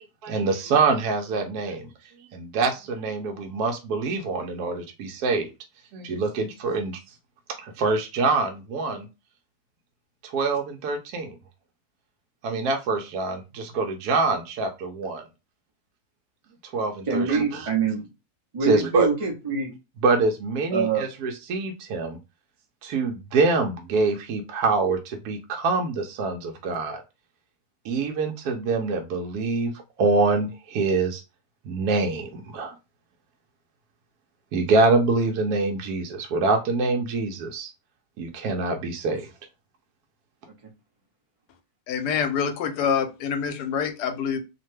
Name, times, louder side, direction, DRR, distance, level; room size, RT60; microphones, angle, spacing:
voice 1, 0.2-1.9 2.3-5.5 5.9-7.0 7.6-9.1 10.2-11.3 12.4-15.2 16.7-17.7 18.6-19.1 20.0-22.2 22.8-27.0 27.8-29.7 30.0-31.2 31.7-32.7 34.5-37.7 38.2-39.3, right 3 dB, 75° right, 1.0 m, -25 dB
voice 2, 17.1-18.1 18.5-19.7 20.7-21.1, right 5 dB, 50° right, 0.4 m, -25 dB
voice 3, 41.9-44.4, left 7 dB, 80° left, 1.1 m, -26 dB
2.8 x 2.1 x 3.0 m
omnidirectional pair, 1.7 m